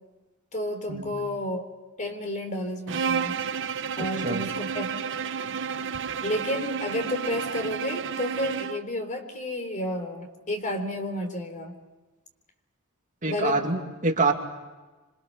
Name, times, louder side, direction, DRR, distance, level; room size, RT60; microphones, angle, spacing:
voice 1, 0.5-1.6 2.0-3.4 4.0-4.9 6.2-11.8 13.3-13.7, left 1 dB, 35° left, 5 dB, 4.0 m, -31 dB
Bowed string instrument, 2.9-8.9, right 6 dB, 60° right, 0.8 m, -31 dB
voice 2, 13.2-14.3, right 3 dB, 35° right, 2 dB, 2.5 m, -25 dB
27.0 x 25.5 x 6.7 m, 1.2 s
head